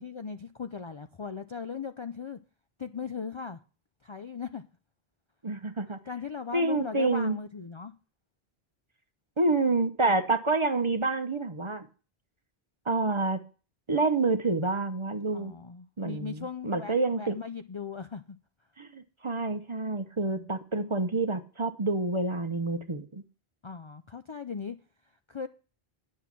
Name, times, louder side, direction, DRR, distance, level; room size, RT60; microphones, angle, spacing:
voice 1, 0.0-2.4 2.8-3.6 4.0-4.6 6.1-7.9 15.3-18.4 20.3-20.9 23.6-24.8 25.0-25.5, left 6 dB, 40° left, 0.4 m, -38 dB
voice 2, 5.4-6.0 6.5-7.4 9.4-11.9 12.9-13.4 13.9-15.5 16.0-17.4 18.8-23.2, right 3 dB, 35° right, 0.8 m, -28 dB
10.5 x 6.5 x 5.9 m
omnidirectional pair, 1.0 m